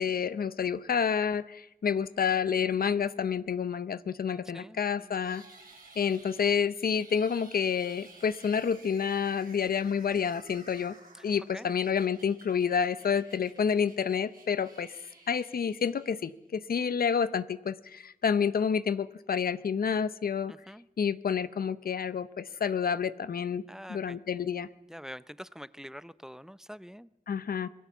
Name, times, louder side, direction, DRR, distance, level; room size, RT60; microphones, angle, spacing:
voice 1, 0.0-5.4 6.0-11.0 11.2-15.0 15.3-20.5 21.0-23.6 23.9-24.7 27.3-27.7, left 7 dB, 90° left, 15 dB, 0.7 m, -29 dB
voice 2, 4.5-5.3 11.5-11.7 20.5-20.8 23.7-24.2 24.9-27.1, equal, 5° right, 16 dB, 0.8 m, -45 dB
sound 1, 5.2-16.5, right 3 dB, 90° right, 7.4 m, -55 dB
26.0 x 18.5 x 7.3 m, 0.90 s
cardioid pair, 40°, 15 cm